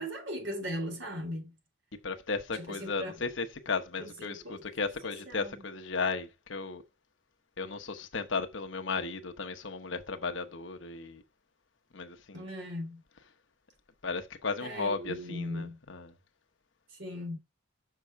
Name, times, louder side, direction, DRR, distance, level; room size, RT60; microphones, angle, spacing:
voice 1, 0.0-1.5 2.5-3.1 4.0-4.7 5.0-5.6 12.3-13.0 14.6-15.8 16.9-17.4, equal, 65° right, 3.8 m, -38 dB
voice 2, 2.0-6.8 7.6-11.2 11.9-12.4 14.0-16.1, left 4 dB, 70° left, 1.0 m, -35 dB
6.9 x 5.6 x 4.7 m
head